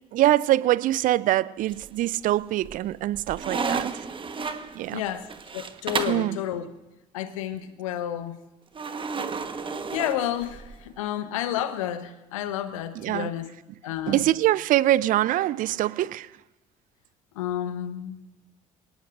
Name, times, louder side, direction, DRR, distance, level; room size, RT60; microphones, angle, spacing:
voice 1, 0.1-4.0 4.7-5.0 6.1-6.4 12.9-13.3 14.1-16.3, right 14 dB, 50° right, 0.5 m, -24 dB
sound 1, 1.6-2.2 2.6-6.3 8.8-10.8, right 5 dB, 30° right, 1.3 m, -32 dB
voice 2, 4.9-5.3 5.5-6.7 7.1-8.4 9.9-13.5 13.8-14.2 17.4-18.2, left 11 dB, 75° left, 1.0 m, -30 dB
28.0 x 18.5 x 2.6 m
figure-of-eight pair, 50°, 17 cm